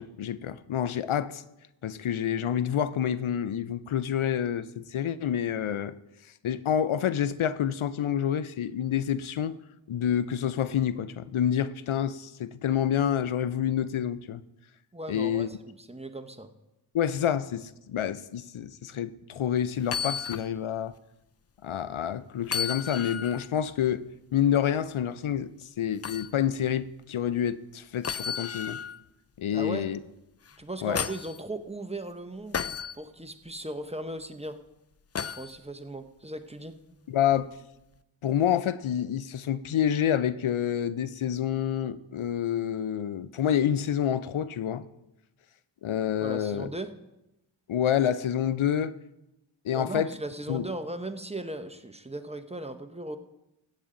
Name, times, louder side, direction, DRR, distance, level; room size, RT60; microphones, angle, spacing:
voice 1, 0.0-1.4 1.8-5.9 6.4-9.6 9.9-14.4 15.1-15.5 16.9-20.9 21.6-24.0 24.3-25.5 25.8-28.8 29.4-30.0 30.8-31.0 37.1-37.5 38.2-44.9 45.8-46.7 47.7-48.9 49.6-50.1 50.5-50.6, left 9 dB, 90° left, 15 dB, 0.6 m, -28 dB
voice 2, 14.9-16.5 29.5-30.0 30.6-32.6 33.0-34.6 35.2-37.1 46.2-46.9 49.7-53.2, right 1 dB, 15° right, 8 dB, 0.8 m, -38 dB
sound 1, 19.8-20.5 20.9-21.0 22.4-23.5 26.0-26.3 28.0-29.0 30.5-31.4 32.5-33.0 35.1-35.5 37.3-37.4, left 7 dB, 35° left, 0.4 m, -33 dB
15.0 x 8.8 x 3.8 m, 0.90 s
wide cardioid pair, 50°, 47 cm